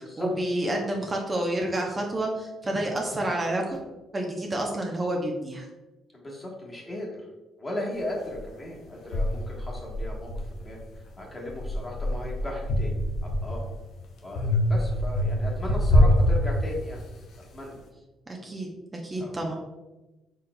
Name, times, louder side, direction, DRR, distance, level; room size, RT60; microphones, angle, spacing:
voice 1, 0.0-3.9 4.1-5.7 18.3-19.5, right 1 dB, 30° right, 0 dB, 0.7 m, -29 dB
voice 2, 6.2-7.2 7.6-10.3 10.6-10.8 11.2-12.9 13.2-13.6 14.2-17.0 17.5-17.8 19.2-19.3, left 1 dB, 25° left, -2 dB, 1.3 m, -36 dB
sound 1, 8.3-8.4 9.1-11.0 11.4-13.8 14.4-17.1, left 1 dB, 80° left, 0.6 m, -25 dB
4.3 x 3.6 x 2.2 m, 1.1 s
supercardioid pair, 65°, 0 cm